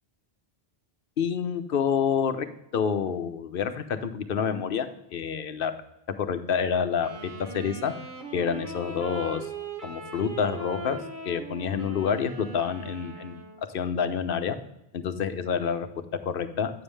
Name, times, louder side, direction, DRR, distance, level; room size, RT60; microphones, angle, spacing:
voice 1, 1.2-2.5 2.7-5.7 6.2-7.9 8.3-9.4 9.8-11.0 11.3-13.4 13.7-14.6 14.9-15.9 16.2-16.7, left 7 dB, 60° left, 9 dB, 0.9 m, -28 dB
Wind instrument woodwind instrument, 6.9-13.8, right 3 dB, 50° right, 1.1 m, -39 dB
8.9 x 7.2 x 3.3 m, 0.83 s
omnidirectional pair, 1.1 m